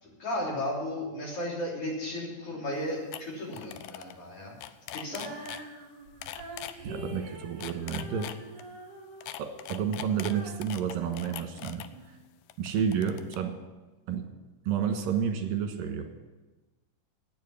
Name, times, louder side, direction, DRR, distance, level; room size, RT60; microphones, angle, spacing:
voice 1, 0.0-4.5 4.9-5.3, left 1 dB, 45° left, -4 dB, 4.1 m, -34 dB
sound 1, 2.7-2.8 3.1-3.2 3.5-4.1 4.4-5.6 6.2-6.7 7.4-8.6 9.2-11.9 12.5-13.4, left 12 dB, 85° left, 2.3 m, -41 dB
Female singing, 5.0-12.1, right 1 dB, 65° right, 3.3 m, -45 dB
voice 2, 6.9-8.3 9.4-11.8 12.6-13.6 14.1-14.2 14.7-16.1, right 7 dB, 85° right, 5 dB, 3.1 m, -30 dB
9.5 x 8.9 x 9.3 m, 1.2 s
omnidirectional pair, 3.9 m